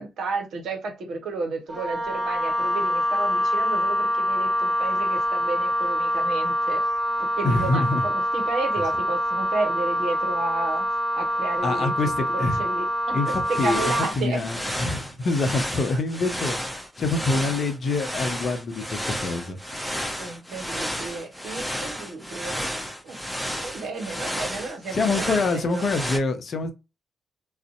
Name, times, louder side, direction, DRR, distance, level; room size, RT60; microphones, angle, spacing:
voice 1, 0.0-6.8 7.2-10.9 11.2-14.5 20.2-22.6 23.0-23.2 23.6-25.9, right 3 dB, 65° right, 0.7 m, -32 dB
Wind instrument woodwind instrument, 1.7-14.2, equal, 30° right, 1.4 m, -25 dB
voice 2, 7.4-8.0 11.6-12.6 13.1-16.6 17.0-19.6 24.9-26.7, left 3 dB, 50° left, 0.6 m, -25 dB
sound 1, 13.3-26.2, equal, 5° left, 0.8 m, -32 dB
2.5 x 2.1 x 2.5 m
hypercardioid pair, 45°, 0 cm